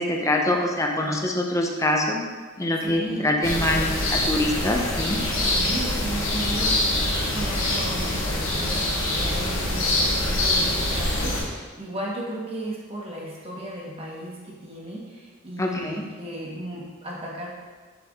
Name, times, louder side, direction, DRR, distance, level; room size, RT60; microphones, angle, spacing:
voice 1, 0.0-2.2 2.6-5.2 15.6-16.0, left 1 dB, 15° left, 1 dB, 0.7 m, -24 dB
voice 2, 2.8-3.4 5.5-17.5, right 1 dB, 30° right, -4 dB, 1.4 m, -35 dB
sound 1, 3.4-11.4, left 1 dB, 80° left, 1.9 m, -24 dB
7.9 x 4.6 x 3.6 m, 1.4 s
head